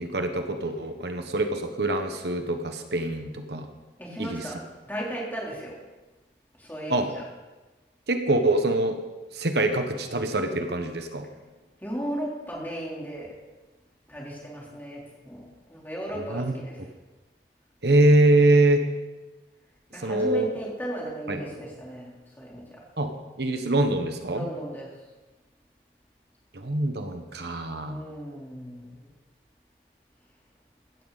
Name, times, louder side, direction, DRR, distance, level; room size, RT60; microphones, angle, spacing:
voice 1, 0.0-3.7 4.2-4.4 6.9-7.1 8.1-9.0 9.3-11.2 16.2-16.5 17.8-18.8 20.0-20.5 21.3-21.4 23.0-23.1 23.4-24.5 26.5-28.0, right 2 dB, 65° right, 6 dB, 1.2 m, -24 dB
voice 2, 4.0-5.8 6.6-7.2 11.8-13.3 14.1-16.8 19.9-22.8 24.3-24.9 27.9-29.1, right 1 dB, 10° left, -4 dB, 3.6 m, -36 dB
16.5 x 12.5 x 4.2 m, 1.2 s
head